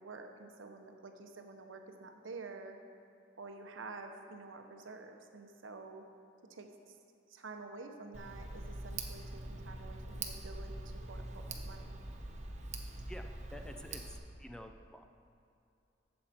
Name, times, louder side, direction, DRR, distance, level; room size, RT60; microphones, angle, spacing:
voice 1, 0.0-2.8 3.4-6.1 6.5-6.9 7.3-12.0, right 3 dB, 85° right, 5 dB, 0.9 m, -49 dB
Tick, 8.1-14.2, right 2 dB, 40° right, 0.9 m, -43 dB
voice 2, 13.1-14.0 14.4-15.0, equal, 5° left, 5 dB, 0.4 m, -49 dB
11.5 x 7.6 x 4.3 m, 2.6 s
head